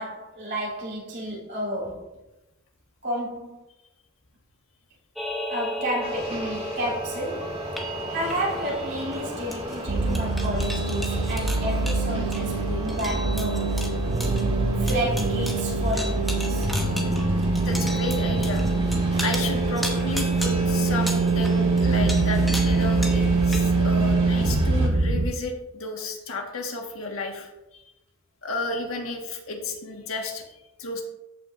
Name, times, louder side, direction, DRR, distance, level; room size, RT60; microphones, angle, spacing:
voice 1, 0.0-2.2 3.0-3.6 5.5-13.8 14.8-16.7, equal, 55° right, 3.3 m, -31 dB
sound 1, 5.2-23.6, equal, ahead, 1.0 m, -36 dB
sound 2, 6.0-24.9, equal, 25° right, 1.7 m, -34 dB
sound 3, 9.9-25.3, right 3 dB, 75° right, 0.7 m, -24 dB
voice 2, 17.6-18.6 19.2-27.8 28.4-31.0, left 2 dB, 75° left, 1.5 m, -32 dB
14.0 x 5.9 x 2.6 m
head